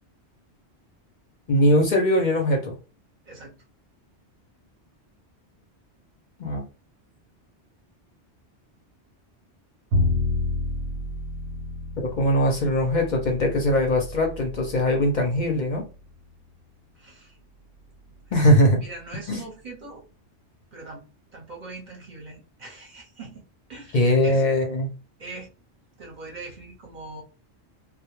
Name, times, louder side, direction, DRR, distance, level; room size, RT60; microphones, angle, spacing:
voice 1, 1.5-2.8 6.4-6.6 12.0-15.8 18.3-18.8 19.3-19.4 23.9-24.9, left 1 dB, 55° left, 0.6 m, -21 dB
voice 2, 3.2-3.6 16.9-17.4 18.1-18.2 18.8-20.0 20.7-21.1 21.3-24.4 25.2-25.5 26.0-27.2, right 3 dB, 50° right, 0.7 m, -41 dB
Bowed string instrument, 9.9-16.1, left 2 dB, 85° right, 0.9 m, -30 dB
2.1 x 2.0 x 3.0 m
omnidirectional pair, 1.2 m